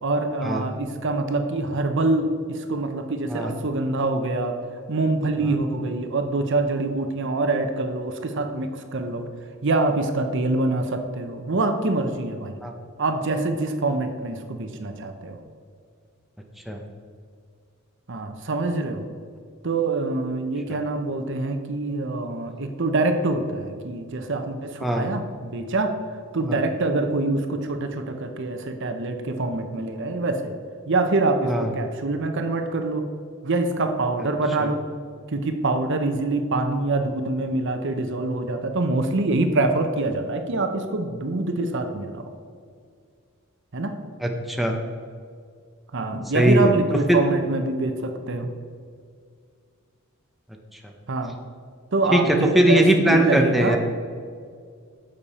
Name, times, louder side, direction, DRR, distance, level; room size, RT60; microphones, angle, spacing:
voice 1, 0.0-4.6 4.9-9.3 9.6-12.6 13.0-15.4 18.1-19.1 19.6-25.9 26.3-30.5 30.9-33.0 33.4-34.8 35.3-42.3 43.7-43.9 45.9-48.5 51.1-51.3 51.9-53.8, right 2 dB, 60° right, 7 dB, 0.8 m, -25 dB
voice 2, 44.2-44.7 46.3-46.7 47.1-47.2 52.1-53.8, right 1 dB, ahead, 2 dB, 0.7 m, -20 dB
10.5 x 7.0 x 4.2 m, 2.1 s
head